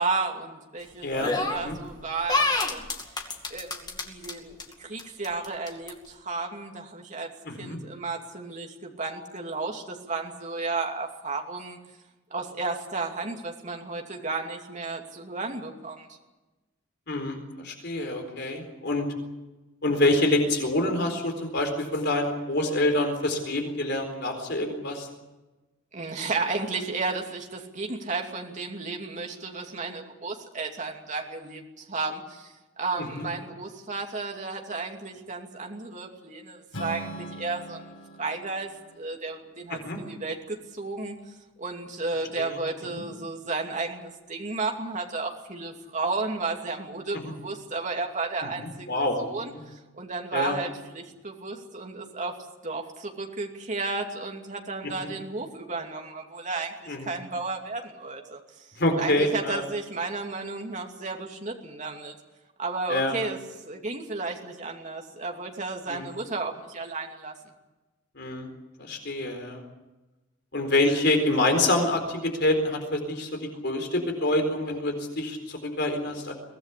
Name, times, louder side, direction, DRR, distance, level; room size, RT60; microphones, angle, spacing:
voice 1, 0.0-2.9 3.5-7.3 7.6-11.8 12.3-16.2 25.9-37.9 38.2-41.2 41.6-52.4 52.6-58.7 58.9-62.2 62.6-63.4 63.6-67.3, right 3 dB, 35° right, 2 dB, 2.6 m, -33 dB
voice 2, 1.0-1.7 7.4-7.8 17.1-19.1 19.8-25.1 33.0-33.3 39.7-40.0 42.4-42.6 47.2-47.3 48.6-49.2 49.5-49.6 50.3-50.5 54.8-55.1 56.9-57.1 58.8-59.6 62.9-63.1 65.9-66.1 68.2-68.5 68.8-69.6 70.5-73.3 73.6-76.3, left 1 dB, 55° left, 4 dB, 4.2 m, -26 dB
sound 1, 1.2-1.8 2.3-4.3 4.6-4.7 5.0-5.9, left 3 dB, 20° left, 2.3 m, -27 dB
Strum, 36.7-40.9, right 1 dB, 90° left, 6.0 m, -42 dB
23.5 x 18.0 x 8.5 m, 1.1 s
head